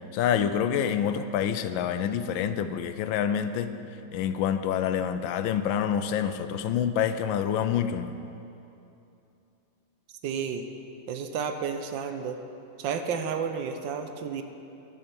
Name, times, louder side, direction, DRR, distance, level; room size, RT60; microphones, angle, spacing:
voice 1, 0.1-3.7 4.1-8.1, left 8 dB, 85° left, 11 dB, 1.4 m, -27 dB
voice 2, 10.2-10.7 11.1-12.4 12.8-14.4, right 6 dB, 80° right, 7 dB, 1.5 m, -31 dB
13.0 x 7.2 x 7.0 m, 2.7 s
omnidirectional pair, 2.1 m